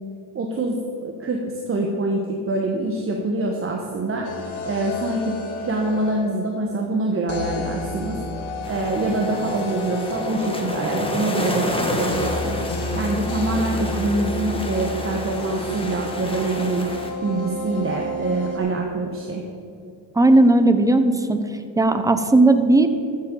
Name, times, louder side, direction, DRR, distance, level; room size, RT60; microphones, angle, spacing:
voice 1, 0.3-4.3 4.6-8.2 8.7-12.6 12.9-16.9 17.2-19.4, right 2 dB, 30° right, 0 dB, 1.2 m, -25 dB
sound 1, 4.2-6.5 7.3-18.6, left 2 dB, 80° left, 1.6 m, -31 dB
sound 2, 8.6-17.1, left 1 dB, 10° left, 1.6 m, -30 dB
voice 2, 20.2-21.4 21.8-22.9, right 2 dB, 5° right, 9 dB, 0.7 m, -16 dB
13.5 x 7.6 x 3.9 m, 2.6 s
supercardioid pair, 85°, 47 cm